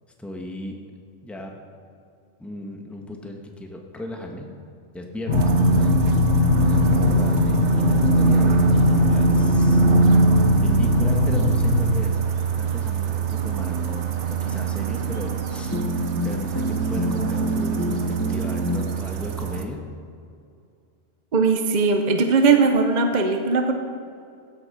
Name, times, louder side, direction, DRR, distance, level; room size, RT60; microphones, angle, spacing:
voice 1, 0.2-0.8 1.2-1.5 2.4-4.5 4.9-5.9 6.6-9.8 10.6-12.1 12.6-15.8 16.2-19.8, left 1 dB, ahead, 1 dB, 1.2 m, -36 dB
sound 1, 5.3-12.0, left 6 dB, 80° left, 1.2 m, -22 dB
sound 2, 5.3-19.6, right 5 dB, 65° right, 1.2 m, -22 dB
sound 3, 15.7-19.0, equal, 20° left, 0.4 m, -27 dB
voice 2, 21.3-23.7, right 4 dB, 40° right, 5 dB, 0.8 m, -19 dB
15.5 x 8.2 x 5.6 m, 2.4 s
omnidirectional pair, 1.3 m